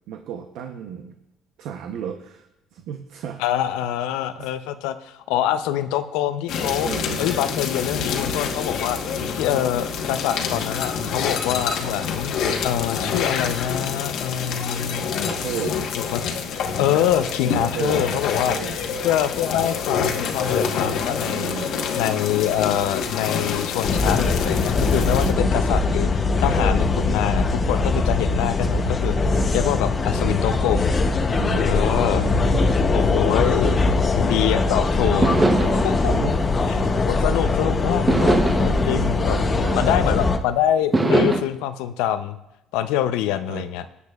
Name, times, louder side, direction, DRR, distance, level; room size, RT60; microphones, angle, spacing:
voice 1, 0.1-1.1 1.6-3.4 4.4-4.5 6.8-7.3 15.3-15.8 17.4-18.2 18.5-18.8 21.2-21.8 25.3-25.6 31.3-31.8 32.1-32.9 33.7-34.0 35.0-35.8 36.1-36.4 39.2-39.9 43.5-43.7, right 8 dB, 75° right, 6 dB, 0.7 m, -33 dB
voice 2, 3.4-6.9 7.2-9.0 9.3-12.4 12.6-15.0 16.0-16.4 16.8-18.6 19.0-21.5 21.9-29.1 29.5-31.0 31.5-32.2 32.9-33.8 34.2-35.3 35.8-36.1 36.7-39.4 39.7-42.4 42.7-43.9, left 11 dB, 90° left, 10 dB, 0.5 m, -25 dB
sound 1, 6.5-25.3, left 6 dB, 65° left, 1.1 m, -27 dB
sound 2, 23.8-40.4, left 3 dB, 25° left, 0.7 m, -21 dB
sound 3, 35.2-37.5 38.1-40.3 40.9-41.4, right 2 dB, 20° right, 0.8 m, -23 dB
20.0 x 8.3 x 2.4 m, 0.91 s
cardioid pair, 115°, 0 cm